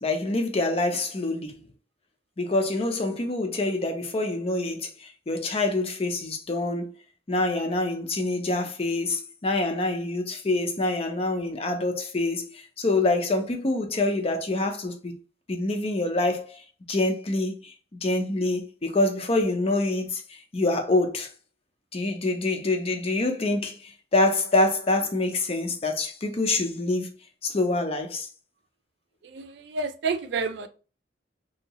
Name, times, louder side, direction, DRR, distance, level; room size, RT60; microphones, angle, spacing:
voice 1, 0.0-1.6 2.4-6.9 7.3-15.2 15.5-16.6 16.9-17.7 18.0-21.3 21.9-27.1 27.4-28.3, left 2 dB, 30° left, 0.5 m, -26 dB
voice 2, 29.3-30.7, right 4 dB, 65° right, 0.4 m, -29 dB
2.7 x 2.7 x 2.8 m
head